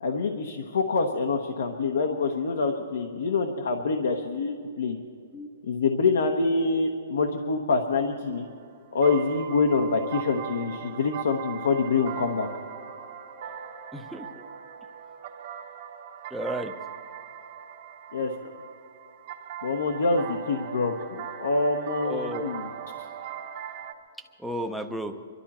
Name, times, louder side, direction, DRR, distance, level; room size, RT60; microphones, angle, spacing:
voice 1, 0.0-5.0 5.6-8.5 8.9-12.5 18.1-18.3 19.6-22.7 23.0-23.1, left 4 dB, 80° left, 2 dB, 1.1 m, -26 dB
sound 1, 8.2-23.9, right 9 dB, 35° right, 1.0 m, -40 dB
voice 2, 13.9-14.5 16.3-16.7 22.0-22.5 24.4-25.2, right 1 dB, ahead, 4 dB, 0.6 m, -33 dB
23.0 x 13.0 x 4.3 m, 2.5 s
hypercardioid pair, 170°, 0 cm